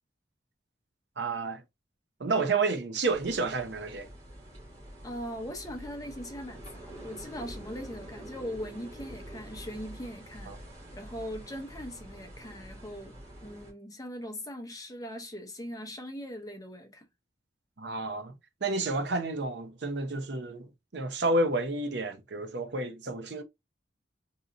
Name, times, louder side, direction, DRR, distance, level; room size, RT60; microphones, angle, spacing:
voice 1, 1.2-1.6 2.2-4.1 10.5-10.6 17.8-23.4, right 3 dB, 65° right, 0.7 m, -30 dB
sound 1, 3.1-13.7, right 1 dB, 30° right, 2.2 m, -46 dB
voice 2, 5.0-10.6 10.9-17.1, equal, 20° left, 0.5 m, -40 dB
4.0 x 2.8 x 2.5 m
head